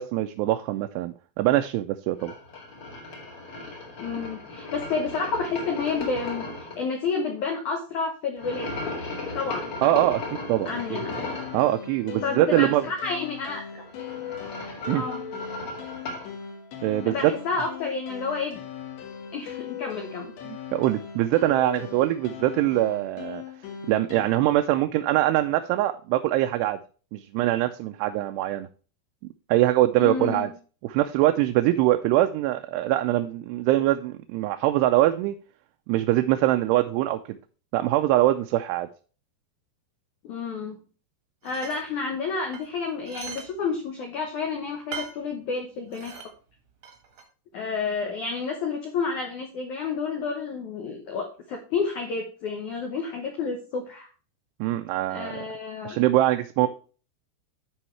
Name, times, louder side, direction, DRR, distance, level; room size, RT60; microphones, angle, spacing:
voice 1, 0.0-2.3 9.8-11.0 11.5-12.9 14.9-15.0 16.8-17.3 20.5-23.4 23.9-26.8 27.1-28.7 29.5-30.5 30.8-35.4 35.9-37.4 37.7-38.9 54.6-55.4 55.9-56.7, right 15 dB, 85° right, 7 dB, 2.6 m, -23 dB
sound 1, 2.2-6.7 8.4-11.6 13.7-16.3, left 2 dB, 40° left, 1.7 m, -36 dB
voice 2, 4.0-9.1 9.3-9.7 10.7-11.2 12.2-13.8 14.8-15.2 17.0-18.6 19.3-20.3 30.0-30.5 40.2-40.8 41.4-46.2 47.5-54.1 55.1-56.0 56.6-56.7, left 4 dB, 75° left, 3 dB, 1.8 m, -30 dB
sound 2, 10.6-24.3, left 8 dB, 90° left, 3.9 m, -39 dB
sound 3, 41.4-41.8 42.5-43.5 43.8-43.9 44.9-45.2 45.9-46.3 46.8-47.2, right 6 dB, 50° right, 1.5 m, -39 dB
13.0 x 4.7 x 3.2 m, 0.37 s
omnidirectional pair, 4.9 m